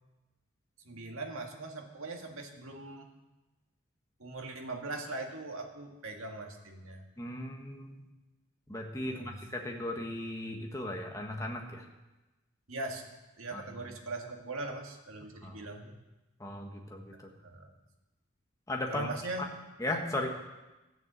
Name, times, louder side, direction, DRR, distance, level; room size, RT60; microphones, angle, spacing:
voice 1, 0.8-3.1 4.2-7.0 9.1-9.4 12.7-13.0 13.4-16.0 17.4-17.7 18.9-19.5, right 2 dB, 85° right, 3 dB, 1.9 m, -40 dB
voice 2, 7.2-8.0 8.7-11.8 13.5-13.6 15.4-15.6 16.4-17.1 18.7-19.1 19.8-20.3, left 1 dB, 15° left, 1 dB, 1.4 m, -36 dB
14.0 x 7.1 x 8.1 m, 1.1 s
head